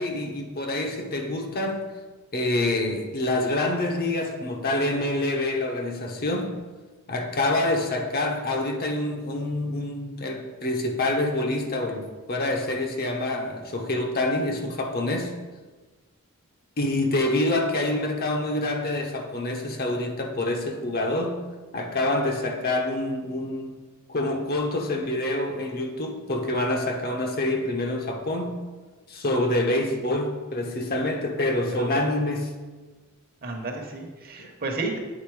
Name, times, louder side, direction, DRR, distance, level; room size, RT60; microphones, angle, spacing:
voice 1, 0.0-1.9 2.3-6.6 7.1-15.3 16.8-21.4 21.7-23.8 24.1-28.6 29.1-32.5 34.4-34.5, left 1 dB, 45° left, 0.9 m, -26 dB
voice 2, 33.4-35.0, right 3 dB, 45° right, 1.1 m, -32 dB
8.7 x 4.1 x 4.7 m
head